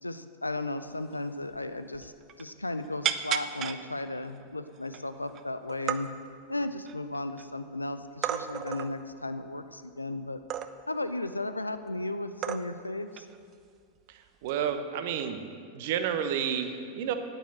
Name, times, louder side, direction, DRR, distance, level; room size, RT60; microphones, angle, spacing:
voice 1, 0.0-6.1 6.5-10.4 10.9-13.3, left 2 dB, 85° left, 10 dB, 0.5 m, -35 dB
sound 1, 1.1-1.2 1.5-1.7 1.9-2.5 3.0-3.8 4.4-4.5 4.8-5.4 5.7-6.0 6.6-7.4 8.2-8.9 10.5-11.0 11.9-12.0 12.4-12.9 13.2-13.4 14.4-14.7, right 10 dB, 30° right, 0.5 m, -33 dB
voice 2, 14.4-15.4 15.7-17.1, right 8 dB, 50° right, 8 dB, 0.9 m, -30 dB
9.4 x 8.9 x 7.6 m, 2.3 s
figure-of-eight pair, 90°, 0 cm